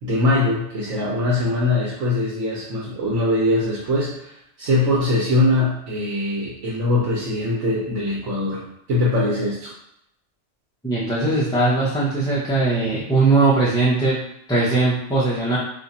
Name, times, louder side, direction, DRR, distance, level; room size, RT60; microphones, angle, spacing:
voice 1, 0.0-9.7, left 2 dB, 75° right, -6 dB, 1.2 m, -22 dB
voice 2, 10.8-14.2 14.5-15.6, right 3 dB, 5° left, -10 dB, 0.5 m, -19 dB
2.7 x 2.4 x 4.0 m, 0.77 s
omnidirectional pair, 1.2 m